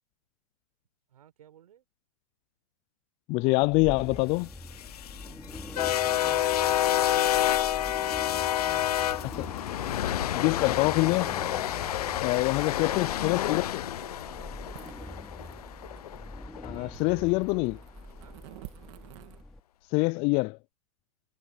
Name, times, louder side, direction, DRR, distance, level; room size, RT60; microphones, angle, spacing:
voice 1, 1.1-1.9 6.0-8.6 12.3-15.2 16.7-17.4 18.2-18.4, right 10 dB, 80° right, 5.0 m, -55 dB
voice 2, 3.3-4.5 9.3-9.5 10.3-11.3 12.2-13.6 16.6-17.8 19.9-20.6, left 27 dB, 30° left, 0.3 m, -25 dB
sound 1, 3.6-19.6, left 1 dB, ahead, 4.1 m, -45 dB
sound 2, 4.5-16.7, left 12 dB, 80° left, 0.7 m, -29 dB
sound 3, 14.2-19.4, right 21 dB, 50° right, 2.4 m, -51 dB
hypercardioid pair, 130°, 19 cm